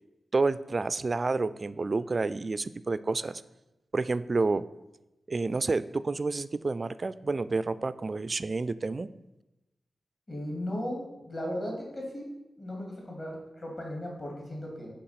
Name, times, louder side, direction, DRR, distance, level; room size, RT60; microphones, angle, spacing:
voice 1, 0.3-3.4 3.9-4.6 5.3-9.1, right 3 dB, 40° right, 16 dB, 0.3 m, -29 dB
voice 2, 10.3-12.3 12.6-14.9, left 1 dB, 35° left, -1 dB, 2.4 m, -36 dB
6.8 x 4.9 x 5.8 m, 0.98 s
wide cardioid pair, 95°, 0 cm